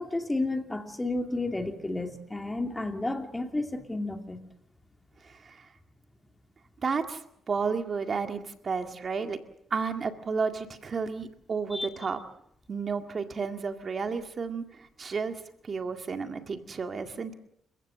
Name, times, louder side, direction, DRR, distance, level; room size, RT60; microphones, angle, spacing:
voice 1, 0.0-4.4 11.7-11.9, left 2 dB, 15° left, 2.6 m, -31 dB
voice 2, 5.2-5.7 6.8-7.2 7.5-9.4 9.7-12.2 12.7-15.4 15.6-17.3, right 5 dB, 40° right, 2.0 m, -32 dB
29.0 x 15.5 x 7.6 m
cardioid pair, 90°, 0 cm